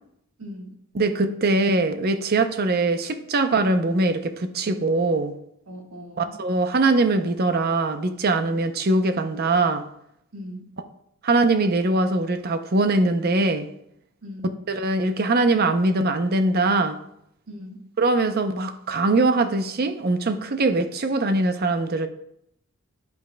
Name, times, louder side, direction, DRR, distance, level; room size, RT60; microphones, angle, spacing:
voice 1, 0.4-0.8 5.7-6.4 10.3-10.7 14.2-14.5 17.5-17.8, equal, 75° right, 1.6 m, -39 dB
voice 2, 0.9-5.3 6.2-9.8 11.2-13.7 14.7-17.0 18.0-22.1, right 2 dB, 45° right, 0.6 m, -22 dB
9.4 x 8.2 x 2.2 m
head